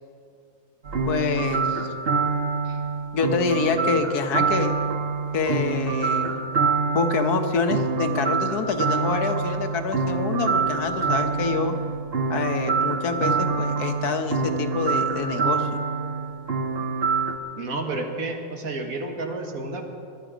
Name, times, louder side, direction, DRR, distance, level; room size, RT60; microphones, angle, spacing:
sound 1, 0.8-17.4, right 4 dB, 45° right, 1.1 m, -25 dB
voice 1, 1.1-1.9 3.1-4.7 5.3-6.4 6.9-11.8 12.3-15.8, left 5 dB, 80° left, 7 dB, 1.6 m, -26 dB
voice 2, 17.6-19.9, right 2 dB, 65° right, 3 dB, 2.0 m, -31 dB
20.5 x 12.0 x 5.1 m, 2.3 s
omnidirectional pair, 1.6 m